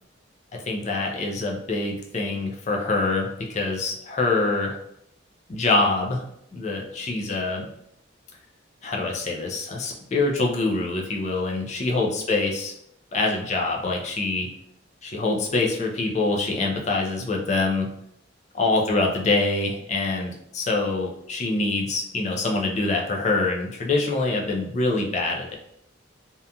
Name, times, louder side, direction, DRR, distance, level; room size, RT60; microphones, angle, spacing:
voice 1, 0.5-4.8 5.5-6.2 6.5-7.7 8.8-12.7 13.1-14.5 15.0-17.9 18.5-25.6, left 3 dB, 35° left, 0 dB, 0.4 m, -25 dB
2.7 x 2.4 x 2.2 m, 0.74 s
head